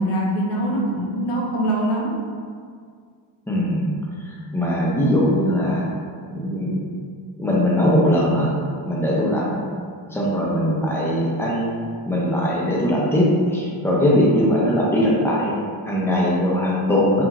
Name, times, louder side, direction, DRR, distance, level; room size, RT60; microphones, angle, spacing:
voice 1, 0.0-2.1, right 1 dB, 90° left, -3 dB, 0.7 m, -23 dB
voice 2, 3.5-3.9 4.3-5.8 6.3-6.8 7.4-8.5 8.8-9.6 10.1-11.8 12.1-17.2, equal, 5° left, -5 dB, 0.4 m, -20 dB
2.4 x 2.4 x 2.9 m, 2.1 s
cardioid pair, 95°, 48 cm